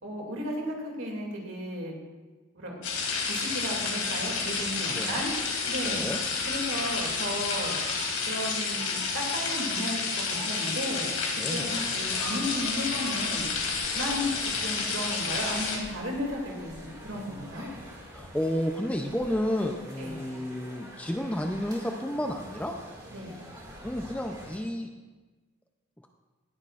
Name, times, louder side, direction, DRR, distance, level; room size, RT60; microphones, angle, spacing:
voice 1, 0.0-1.9 2.5-2.8 3.3-5.3 5.7-6.0 6.5-7.8 8.3-11.1 11.5-13.5 13.9-17.7 20.0-20.2 23.1-23.3, equal, 60° right, -1 dB, 2.5 m, -34 dB
sound 1, 2.8-15.8, left 4 dB, 85° left, 2.8 m, -30 dB
voice 2, 4.9-5.2 5.8-6.2 11.4-11.8 18.1-22.7 23.8-24.9, equal, 5° left, 4 dB, 0.4 m, -31 dB
sound 2, 11.5-24.6, equal, 15° right, 2.0 m, -46 dB
18.5 x 9.9 x 2.5 m, 1.3 s
head